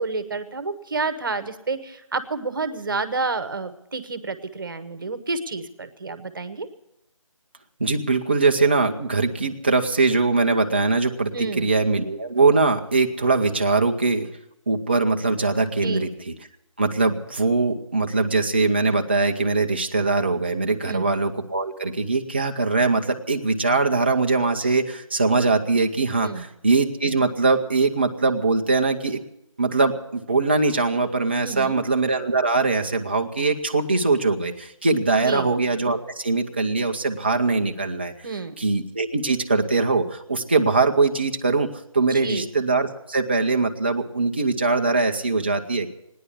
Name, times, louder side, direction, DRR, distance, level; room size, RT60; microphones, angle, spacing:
voice 1, 0.0-6.7 11.3-11.7 15.8-16.1 20.8-21.1 26.2-26.5 31.4-31.8 35.2-35.5 38.2-38.6 42.1-42.5, right 4 dB, 40° right, 12 dB, 1.1 m, -29 dB
voice 2, 7.8-14.3 14.7-16.3 16.8-29.2 29.6-38.1 38.6-45.9, right 3 dB, 20° right, 3 dB, 0.6 m, -22 dB
16.5 x 10.0 x 8.3 m, 0.84 s
figure-of-eight pair, 170°, 17 cm